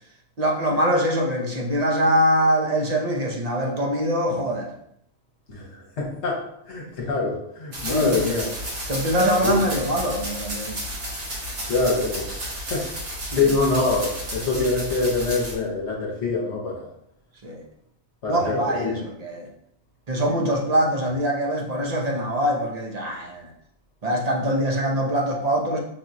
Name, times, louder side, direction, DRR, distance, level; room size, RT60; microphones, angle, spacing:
voice 1, 0.4-4.7 7.8-8.2 8.9-10.8 13.2-13.5 17.4-17.6 18.3-19.5 20.1-23.5 24.0-25.8, equal, 40° right, 0 dB, 0.6 m, -23 dB
voice 2, 6.0-6.4 6.7-8.5 9.4-9.6 11.7-12.4 12.7-12.9 13.3-16.8 18.2-18.9, left 3 dB, 60° left, -2 dB, 1.3 m, -24 dB
sound 1, 7.7-15.5, equal, 60° right, 1.5 m, -32 dB
6.0 x 2.9 x 2.5 m, 0.74 s
omnidirectional pair, 1.4 m